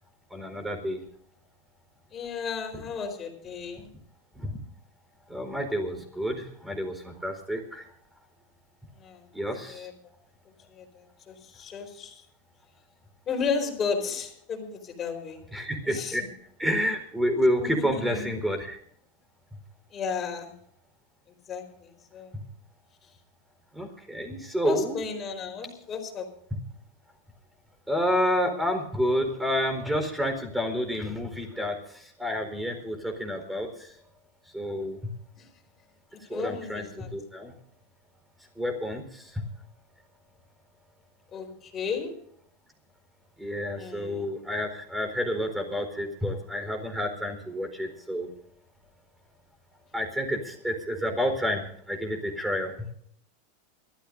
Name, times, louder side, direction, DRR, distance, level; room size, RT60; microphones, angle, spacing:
voice 1, 0.3-1.0 4.3-4.6 5.3-7.9 9.3-9.9 15.5-16.2 16.6-18.8 22.3-22.4 23.7-25.0 27.9-33.9 34.5-35.0 36.2-37.5 38.6-39.4 43.4-48.3 49.9-52.7, equal, 5° right, 6 dB, 4.2 m, -29 dB
voice 2, 2.1-3.9 9.0-9.3 9.6-9.9 10.7-12.2 13.3-15.4 15.8-16.2 17.6-18.3 19.9-20.5 21.5-22.3 24.6-26.3 35.4-35.5 36.1-37.1 41.3-42.1 43.7-44.3, left 5 dB, 30° left, 4 dB, 4.3 m, -34 dB
28.5 x 13.5 x 2.6 m, 0.65 s
supercardioid pair, 130°, 0 cm